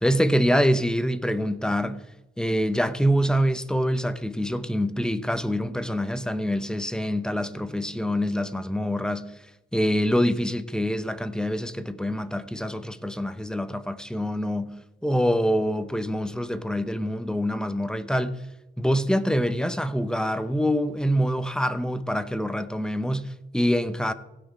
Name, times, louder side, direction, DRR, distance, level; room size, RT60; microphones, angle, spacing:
voice 1, 0.0-2.0 2.4-9.2 9.7-14.7 15.0-18.4 18.8-24.1, equal, 5° left, 0.8 m, -25 dB
16.5 x 6.2 x 4.2 m
cardioid pair, 90°, 20 cm